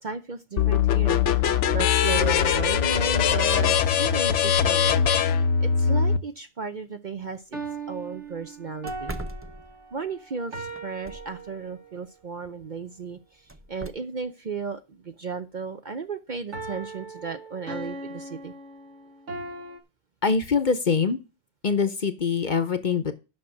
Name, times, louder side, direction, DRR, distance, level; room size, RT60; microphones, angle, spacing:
voice 1, 0.0-5.0 5.3-7.6 7.9-9.1 9.9-18.5, right 5 dB, 45° right, 9 dB, 0.7 m, -35 dB
sound 1, 0.6-6.2, left 8 dB, 70° left, 1.0 m, -21 dB
sound 2, 1.7-3.0 7.5-12.1 16.5-19.8, right 2 dB, 70° right, 1.8 m, -39 dB
sound 3, 7.2-7.4 7.8-7.9 8.3-8.4 8.9-10.1 10.7-11.5 13.5-13.9, right 1 dB, 20° right, 0.4 m, -39 dB
voice 2, 20.2-21.2 21.6-23.1, left 5 dB, 45° left, 10 dB, 0.9 m, -24 dB
7.7 x 5.9 x 7.2 m, 0.30 s
omnidirectional pair, 1.3 m